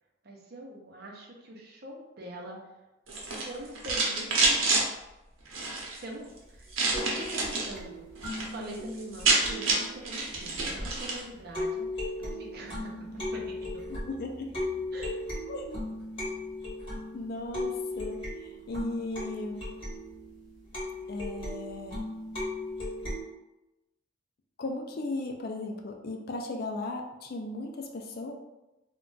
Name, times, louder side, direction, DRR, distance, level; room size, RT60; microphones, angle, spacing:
voice 1, 0.2-2.6 3.4-4.7 6.0-8.0 8.3-13.8 14.9-15.2, right 1 dB, 50° right, -1 dB, 0.6 m, -43 dB
sound 1, 3.1-4.8 5.5-6.0 6.7-7.7 8.1-8.5 8.7-8.8 9.0-11.2, right 3 dB, 90° right, 0.7 m, -27 dB
sound 2, 6.9-11.1 11.5-23.2, left 2 dB, 30° left, 1.3 m, -37 dB
voice 2, 14.1-14.5 15.5-15.8 17.1-19.6 21.1-22.0 24.6-28.3, left 2 dB, 50° left, 3 dB, 0.4 m, -36 dB
2.4 x 2.2 x 3.8 m, 0.98 s
head